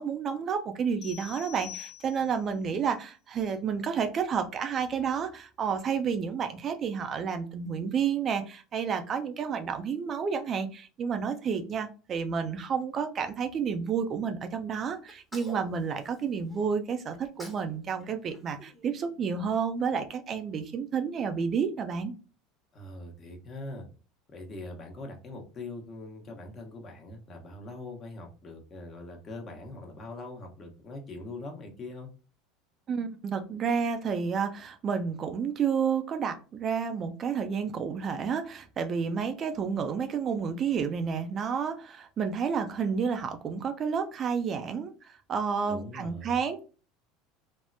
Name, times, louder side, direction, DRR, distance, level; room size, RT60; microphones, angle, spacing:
voice 1, 0.0-22.1 32.9-46.6, right 6 dB, 40° right, 8 dB, 0.4 m, -30 dB
sound 1, 1.0-2.5, left 12 dB, 60° left, 1.1 m, -45 dB
Sneeze, 15.1-16.7 17.1-17.7 18.0-19.5, left 1 dB, 5° left, 0.9 m, -49 dB
voice 2, 22.7-23.8 24.3-32.1 45.6-46.4, left 2 dB, 40° left, 2 dB, 1.0 m, -42 dB
3.5 x 2.1 x 2.6 m, 0.35 s
hypercardioid pair, 90°, 0 cm